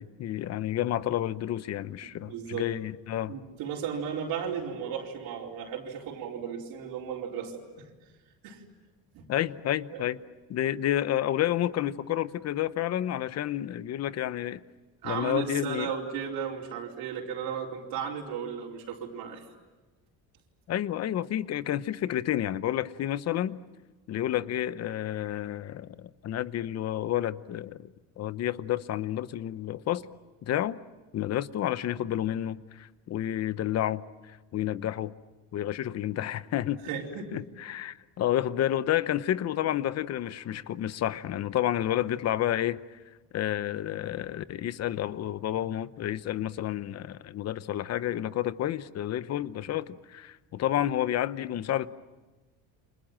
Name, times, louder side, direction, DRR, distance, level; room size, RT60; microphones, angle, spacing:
voice 1, 0.0-3.4 9.3-10.2 10.5-14.6 15.0-15.9 20.7-23.6 24.1-30.1 30.4-30.8 31.1-35.2 35.5-36.8 37.3-43.0 43.3-51.9, left 12 dB, 45° left, 0.9 m, -30 dB
voice 2, 2.2-2.7 3.3-7.9 8.4-8.6 9.1-9.3 9.9-10.0 15.0-19.5 36.8-37.3, right 7 dB, 70° right, 4.5 m, -35 dB
30.0 x 26.0 x 7.5 m
cardioid pair, 160°, 36 cm